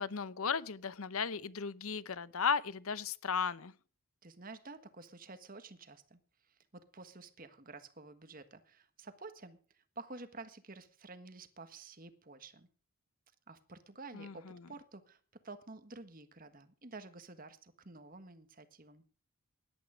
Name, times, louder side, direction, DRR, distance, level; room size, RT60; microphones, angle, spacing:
voice 1, 0.0-3.7 14.1-14.7, left 6 dB, 70° left, 0.8 m, -35 dB
voice 2, 4.2-12.7 13.5-19.0, right 3 dB, 40° right, 1.5 m, -51 dB
17.5 x 11.5 x 5.1 m
head